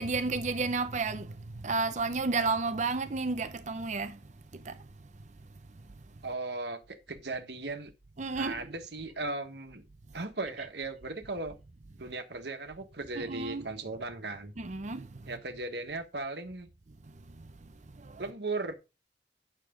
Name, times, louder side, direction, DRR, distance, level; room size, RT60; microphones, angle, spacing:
voice 1, 0.0-4.2 4.5-4.8 8.2-8.6 13.2-13.7 14.6-15.1 18.0-18.2, right 3 dB, 45° right, 0.7 m, -32 dB
voice 2, 6.2-7.9 8.3-9.8 10.1-11.5 12.0-14.5 15.3-16.7 18.2-18.7, right 2 dB, 70° right, 1.4 m, -37 dB
9.2 x 6.5 x 3.7 m
head